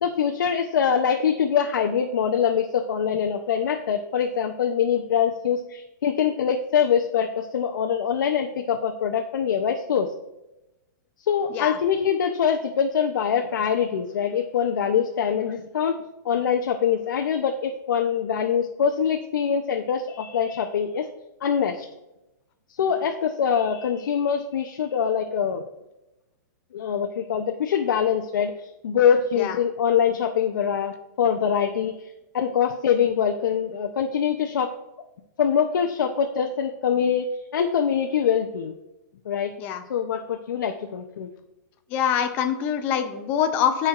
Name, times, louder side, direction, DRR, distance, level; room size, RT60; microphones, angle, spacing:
voice 1, 0.0-10.1 11.3-16.0 16.2-21.1 21.4-21.9 22.8-25.6 26.7-34.7 35.4-38.7 39.3-39.5 39.9-41.3, left 7 dB, 80° left, 4 dB, 0.6 m, -24 dB
voice 2, 41.9-43.9, left 8 dB, 15° left, 8 dB, 0.3 m, -24 dB
13.0 x 4.4 x 2.4 m, 0.94 s
hypercardioid pair, 175°, 10 cm